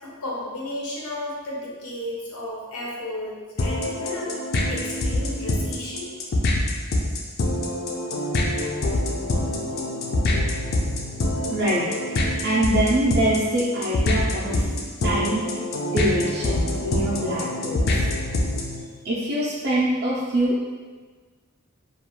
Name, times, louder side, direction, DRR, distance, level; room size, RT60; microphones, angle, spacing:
voice 1, 0.0-4.3 4.7-6.1, left 1 dB, 85° left, -4 dB, 0.7 m, -33 dB
sound 1, 3.6-18.8, left 1 dB, 45° left, 0.3 m, -25 dB
voice 2, 11.5-12.2 12.4-18.0 19.0-20.6, right 1 dB, 50° right, -8 dB, 0.4 m, -24 dB
2.3 x 2.1 x 2.9 m, 1.4 s
head